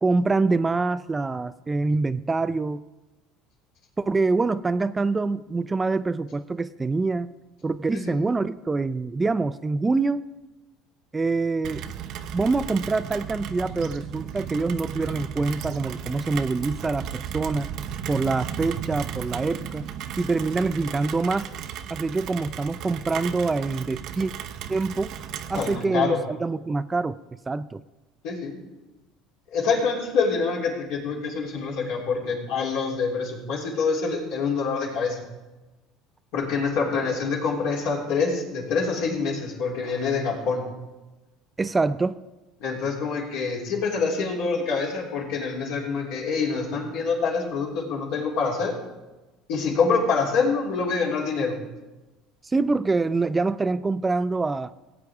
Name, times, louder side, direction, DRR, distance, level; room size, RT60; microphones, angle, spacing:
voice 1, 0.0-2.8 4.0-7.3 7.6-10.2 11.1-11.8 12.3-17.7 18.1-19.9 20.2-21.5 21.9-24.3 24.7-25.1 25.5-27.8 41.6-42.2 52.4-54.7, right 3 dB, 20° right, 14 dB, 0.3 m, -25 dB
Rain, 11.6-25.8, right 9 dB, 60° right, 0.7 m, -35 dB
voice 2, 25.5-26.2 28.2-28.5 29.5-35.2 36.3-40.7 42.6-48.7 49.5-51.5, left 5 dB, 70° left, -2 dB, 3.1 m, -26 dB
17.0 x 8.3 x 3.6 m, 1.1 s
supercardioid pair, 95°, 0 cm